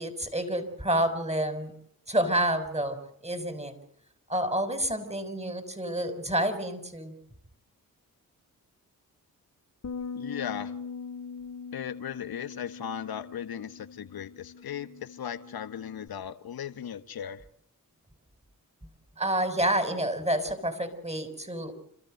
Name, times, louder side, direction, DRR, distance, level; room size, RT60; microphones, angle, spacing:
voice 1, 0.0-1.7 2.1-3.0 3.2-3.7 4.3-7.1 19.2-21.7, right 1 dB, 15° right, 10 dB, 6.2 m, -29 dB
Bass guitar, 9.8-16.1, left 5 dB, 45° left, 2.0 m, -41 dB
voice 2, 10.1-10.7 11.7-17.4, left 9 dB, 75° left, 11 dB, 1.5 m, -37 dB
29.5 x 13.5 x 7.9 m, 0.73 s
supercardioid pair, 40°, 37 cm